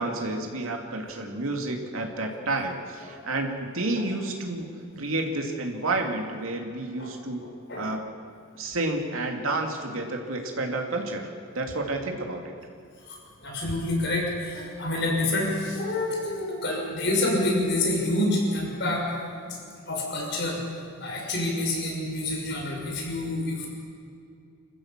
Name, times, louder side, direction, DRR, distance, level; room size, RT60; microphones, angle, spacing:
voice 1, 0.0-7.4 7.7-8.2 8.6-11.3 11.5-12.5, right 2 dB, 80° right, 2 dB, 2.6 m, -30 dB
voice 2, 7.4-7.9 13.1-13.2 13.4-19.0 19.5-19.6 19.9-20.6 21.0-23.7, left 1 dB, 55° left, -1 dB, 5.9 m, -27 dB
26.5 x 15.0 x 7.5 m, 2.3 s
head